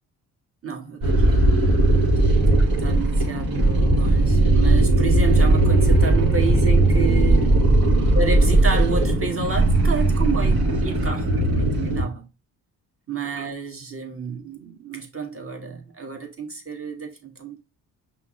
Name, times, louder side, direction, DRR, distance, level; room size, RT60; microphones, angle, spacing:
voice 1, 0.6-7.5 8.1-12.2 13.1-17.6, right 5 dB, 30° right, 1.4 m, -30 dB
sound 1, 1.0-12.0, right 2 dB, 50° right, 1.5 m, -18 dB
5.6 x 2.1 x 3.7 m
hypercardioid pair, 45°, 47 cm